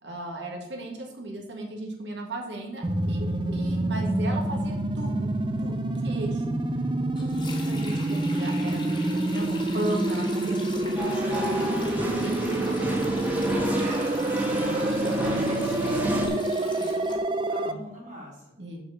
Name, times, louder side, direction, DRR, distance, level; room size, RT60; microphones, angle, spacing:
voice 1, 0.0-6.6 7.2-11.1 12.2-12.4 14.5-15.4 17.7-17.8 18.6-18.8, right 1 dB, 70° right, 1 dB, 1.8 m, -36 dB
sound 1, 2.8-17.7, right 2 dB, 25° right, 0.4 m, -27 dB
Sink (filling or washing), 7.1-17.2, left 3 dB, 25° left, 1.7 m, -43 dB
voice 2, 10.4-12.0 13.2-18.4, equal, 40° right, -2 dB, 3.2 m, -40 dB
sound 2, 11.0-16.3, equal, 10° right, 1.4 m, -30 dB
6.9 x 5.7 x 7.0 m, 0.87 s
head